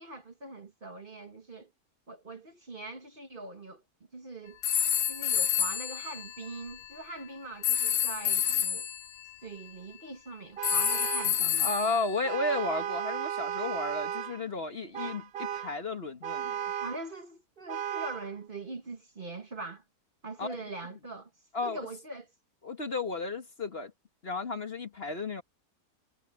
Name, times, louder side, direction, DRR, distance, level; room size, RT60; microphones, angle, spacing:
voice 1, 0.0-1.7 2.1-3.8 4.1-4.6 5.1-8.9 9.4-11.7 16.8-19.8 20.2-21.3 21.6-22.3, right 2 dB, 35° right, 1.6 m, -42 dB
sound 1, 4.6-6.9 7.6-9.1 10.6-12.4, left 9 dB, 80° left, 1.4 m, -29 dB
Vehicle horn car horn honking, 10.6-11.5 12.2-14.4 14.9-15.8 16.2-17.1 17.7-18.3, right 9 dB, 80° right, 0.5 m, -35 dB
voice 2, 11.4-16.7 20.4-20.6 21.5-21.9 22.6-23.9 24.2-25.4, left 3 dB, 40° left, 1.7 m, -33 dB
omnidirectional pair, 1.6 m